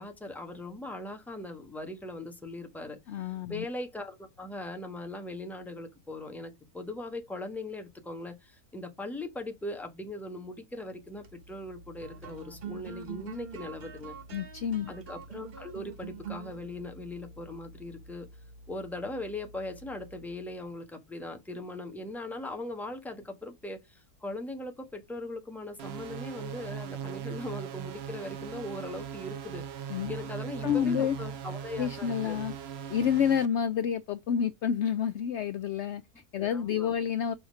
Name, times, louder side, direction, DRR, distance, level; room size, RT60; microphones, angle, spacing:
voice 1, 0.0-14.2 14.9-18.3 18.7-32.4 36.4-36.9, left 2 dB, ahead, 1.0 m, -40 dB
voice 2, 3.1-3.7 14.3-14.9 29.9-30.1 30.6-31.2 31.8-32.5 32.9-37.3, left 8 dB, 70° left, 0.7 m, -29 dB
sound 1, 11.0-20.6, right 6 dB, 45° right, 1.2 m, -46 dB
sound 2, 25.8-33.5, right 8 dB, 60° right, 0.7 m, -39 dB
7.1 x 2.8 x 5.1 m
omnidirectional pair, 1.6 m